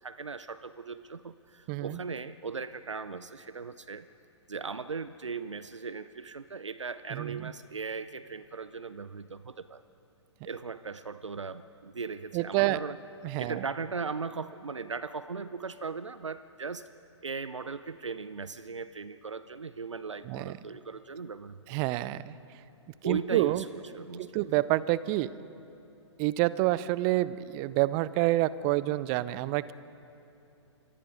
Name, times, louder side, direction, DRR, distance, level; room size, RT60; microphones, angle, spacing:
voice 1, 0.0-4.1 4.5-9.8 10.4-13.0 13.4-16.9 17.2-21.6 23.0-24.5, right 5 dB, 80° right, 14 dB, 0.7 m, -38 dB
voice 2, 1.7-2.0 7.1-7.5 12.3-12.8 13.2-13.6 20.3-20.6 21.7-22.3 23.0-23.6 24.2-25.3 26.2-29.7, right 17 dB, 25° right, 18 dB, 0.6 m, -28 dB
28.0 x 24.0 x 5.1 m, 2.9 s
figure-of-eight pair, 120°, 15 cm